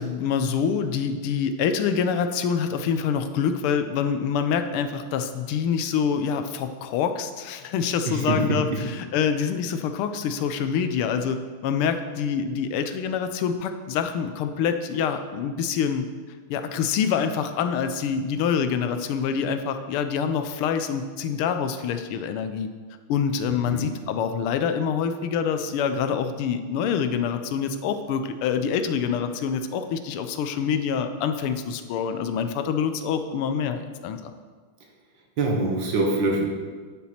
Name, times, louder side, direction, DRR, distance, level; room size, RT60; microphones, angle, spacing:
voice 1, 0.0-16.1 16.5-22.7 23.1-34.3, left 7 dB, 90° left, 8 dB, 1.6 m, -26 dB
voice 2, 8.1-8.8 23.7-23.9 35.4-36.5, right 2 dB, 60° right, 1 dB, 1.9 m, -24 dB
9.5 x 7.0 x 4.3 m, 1.5 s
omnidirectional pair, 2.4 m